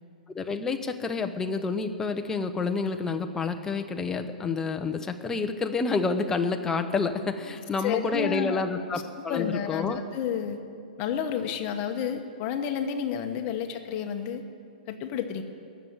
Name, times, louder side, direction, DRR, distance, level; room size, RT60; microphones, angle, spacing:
voice 1, 0.3-10.0, left 4 dB, 10° left, 6 dB, 0.7 m, -29 dB
voice 2, 7.8-8.6 9.3-10.6 11.0-14.4 14.9-15.4, left 7 dB, 30° left, 6 dB, 1.1 m, -30 dB
18.0 x 7.1 x 9.4 m, 2.3 s
hypercardioid pair, 160°, 5 cm